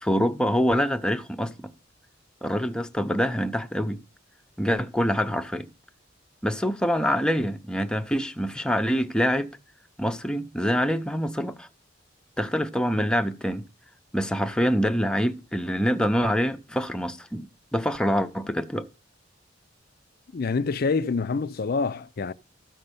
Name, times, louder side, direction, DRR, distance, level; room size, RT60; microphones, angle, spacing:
voice 1, 0.0-1.7 2.4-4.0 4.6-5.7 6.4-9.5 10.0-11.7 12.4-13.7 14.1-18.8, equal, 5° left, 0.6 m, -25 dB
voice 2, 20.3-22.3, left 4 dB, 50° left, 0.4 m, -26 dB
13.5 x 5.4 x 6.8 m
head